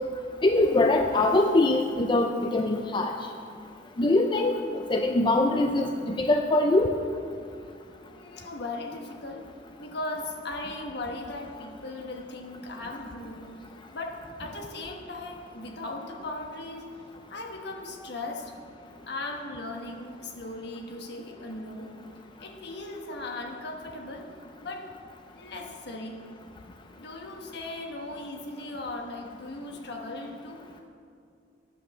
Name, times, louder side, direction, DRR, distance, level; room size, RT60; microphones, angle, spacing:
voice 1, 0.4-3.1 4.0-6.9, left 2 dB, 25° left, 4 dB, 0.5 m, -23 dB
voice 2, 8.0-9.5 9.8-13.5 13.9-16.9 17.3-18.5 19.1-21.9 22.4-24.3 24.6-24.9 25.3-26.2 26.9-30.6, left 2 dB, 65° left, 2 dB, 1.2 m, -38 dB
9.1 x 7.6 x 6.5 m, 2.4 s
head